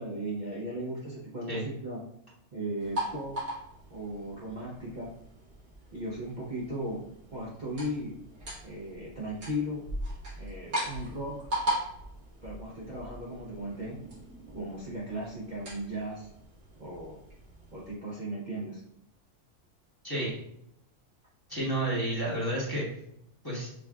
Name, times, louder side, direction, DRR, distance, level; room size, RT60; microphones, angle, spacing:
voice 1, 0.0-2.0 2.5-3.4 3.9-5.1 5.9-7.0 7.3-8.2 8.6-9.9 10.4-11.5 12.4-14.0 14.5-16.3 16.8-17.2 17.7-18.8, equal, 45° right, -5 dB, 0.7 m, -36 dB
sound 1, 2.8-17.9, equal, 85° right, 2.2 m, -39 dB
voice 2, 20.0-20.4 21.5-22.9 23.4-23.7, right 1 dB, 20° left, -7 dB, 1.0 m, -30 dB
6.0 x 2.4 x 2.3 m, 0.78 s
omnidirectional pair, 1.4 m